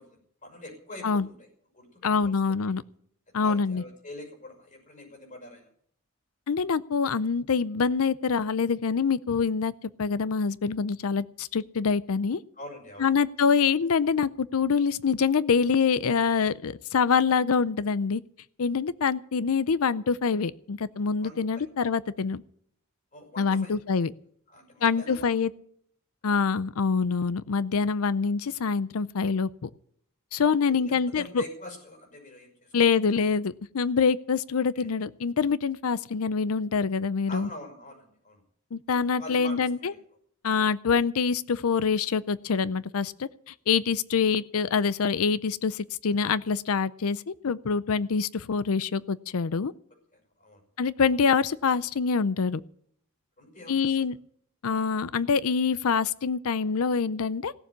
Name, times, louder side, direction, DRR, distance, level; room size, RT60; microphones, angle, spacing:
voice 1, 0.0-1.4 1.7-2.4 3.4-5.7 12.5-13.1 21.2-21.7 23.1-23.8 24.5-25.3 26.3-26.4 30.7-32.7 34.8-34.9 37.3-38.4 39.2-40.0 40.5-40.7 50.1-50.6 53.4-54.1, left 1 dB, 35° left, 3 dB, 6.0 m, -44 dB
voice 2, 2.0-2.8 3.3-3.8 6.5-9.7 10.0-12.4 13.0-18.2 18.6-22.4 23.4-24.1 24.8-25.5 26.2-29.7 30.3-31.4 32.7-37.5 38.7-39.9 40.4-49.7 50.8-52.6 53.7-54.2 54.6-57.5, left 5 dB, 75° left, 18 dB, 0.5 m, -25 dB
17.0 x 7.3 x 9.8 m, 0.64 s
head